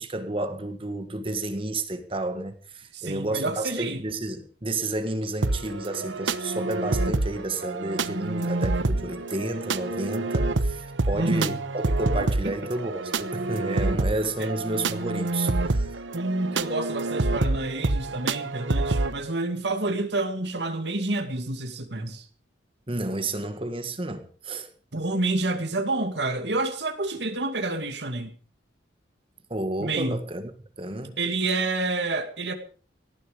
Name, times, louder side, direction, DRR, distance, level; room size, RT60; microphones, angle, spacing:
voice 1, 0.0-16.0 22.9-24.7 29.5-30.4 30.8-31.2, right 2 dB, 30° right, 1.8 m, -31 dB
voice 2, 2.9-4.0 11.1-11.6 12.4-12.5 14.4-14.5 16.1-22.3 24.9-28.3 29.8-30.2 31.2-32.5, right 2 dB, 65° right, 2.3 m, -28 dB
sound 1, 5.4-19.1, right 2 dB, 90° right, 1.0 m, -27 dB
18.5 x 14.0 x 5.2 m
head